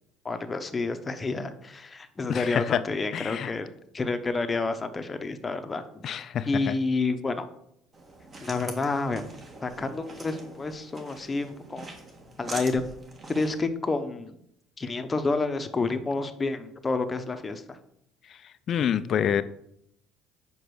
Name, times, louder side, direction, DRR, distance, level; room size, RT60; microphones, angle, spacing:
voice 1, 0.2-6.0 6.5-7.4 8.4-9.2 9.6-11.9 12.4-13.0 13.3-14.3 14.8-17.8, left 3 dB, 25° left, 8 dB, 0.8 m, -29 dB
voice 2, 2.3-2.8 3.1-3.5 6.0-6.8 18.3-19.4, left 9 dB, 50° left, 12 dB, 0.4 m, -27 dB
sound 1, 7.9-13.6, right 2 dB, 35° right, 1.7 m, -43 dB
5.3 x 5.0 x 6.2 m, 0.75 s
supercardioid pair, 95°, 0 cm